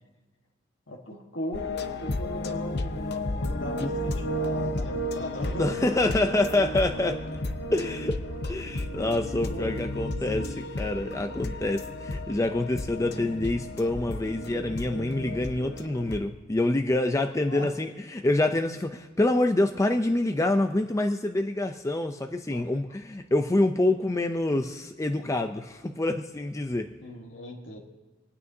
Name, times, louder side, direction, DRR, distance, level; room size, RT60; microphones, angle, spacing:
voice 1, 0.9-5.7 9.5-10.6 17.5-17.7 22.5-22.6 27.0-27.8, left 1 dB, 85° left, 0 dB, 1.5 m, -39 dB
sound 1, 1.5-16.2, left 1 dB, 60° left, 0.7 m, -33 dB
voice 2, 5.6-7.2 7.7-26.9, left 2 dB, 15° left, 6 dB, 0.5 m, -26 dB
27.5 x 9.3 x 2.7 m, 1.3 s
head